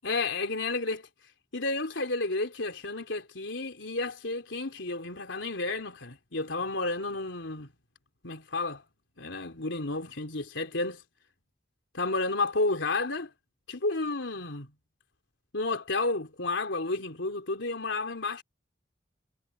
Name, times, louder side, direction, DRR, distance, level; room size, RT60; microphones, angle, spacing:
voice 1, 0.0-1.1 1.5-7.7 8.2-8.8 9.2-11.0 11.9-13.3 13.7-14.7 15.5-18.4, left 3 dB, 90° left, 3.4 m, -31 dB
head